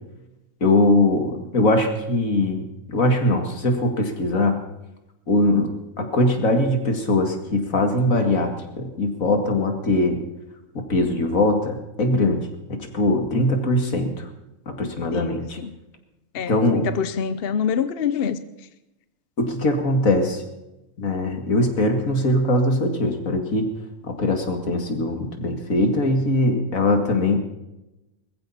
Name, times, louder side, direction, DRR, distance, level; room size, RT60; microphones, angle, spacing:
voice 1, 0.6-4.6 5.3-5.7 6.0-8.5 8.8-10.2 10.7-14.3 14.8-15.6 16.5-16.9 19.4-20.4 21.0-23.7 24.1-27.4, left 1 dB, 80° left, 2.5 m, -21 dB
voice 2, 15.1-15.7 16.3-18.4, left 7 dB, 50° left, 0.9 m, -26 dB
20.5 x 15.0 x 4.2 m
omnidirectional pair, 1.4 m